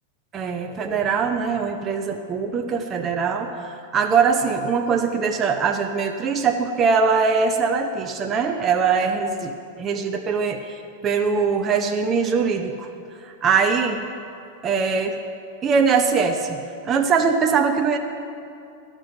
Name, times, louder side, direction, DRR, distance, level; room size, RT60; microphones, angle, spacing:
voice 1, 0.3-12.9 13.2-14.0 14.6-15.2 15.6-16.6 16.8-18.0, right 5 dB, 25° right, 4 dB, 0.6 m, -22 dB
12.5 x 6.1 x 6.5 m, 2.5 s
figure-of-eight pair, 90°, 0 cm